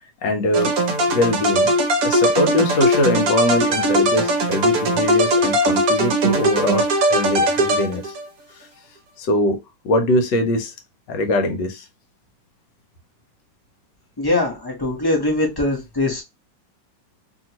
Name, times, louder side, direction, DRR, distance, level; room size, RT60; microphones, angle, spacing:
voice 1, 0.2-0.7 1.1-1.7 2.0-8.1 9.2-9.6 9.8-10.7 11.1-11.8, left 1 dB, 75° left, 1.4 m, -22 dB
sound 1, 0.5-8.3, right 1 dB, 60° right, 1.0 m, -19 dB
voice 2, 14.2-16.2, left 2 dB, 25° left, 0.5 m, -22 dB
2.9 x 2.8 x 2.8 m
omnidirectional pair, 2.0 m